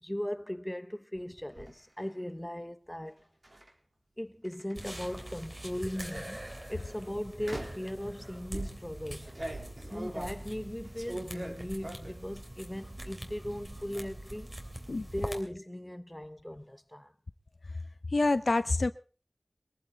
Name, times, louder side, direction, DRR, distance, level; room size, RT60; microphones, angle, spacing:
voice 1, 0.0-3.2 4.2-6.4 6.7-9.3 9.9-14.6 15.1-17.1, equal, 10° left, 0.8 m, -38 dB
sound 1, 1.1-1.7 3.4-3.7 4.4-5.3 6.0-6.3 7.4-7.9 8.5-12.3 12.6-13.2 13.5-14.1, right 1 dB, 40° right, 3.9 m, -42 dB
sound 2, 4.8-15.4, right 1 dB, 20° right, 3.2 m, -44 dB
voice 2, 18.1-18.9, left 2 dB, 60° left, 0.7 m, -26 dB
22.0 x 14.5 x 4.1 m
wide cardioid pair, 65°, 0 cm